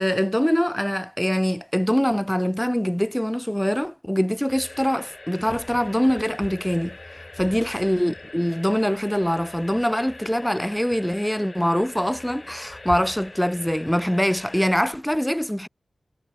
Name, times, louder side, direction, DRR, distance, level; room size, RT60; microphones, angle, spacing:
voice 1, 0.0-7.0 7.4-15.7, equal, 5° left, 0.7 m, -23 dB
sound 1, 4.5-14.8, left 2 dB, 35° left, 1.1 m, -42 dB
wide cardioid pair, 80°, 0 cm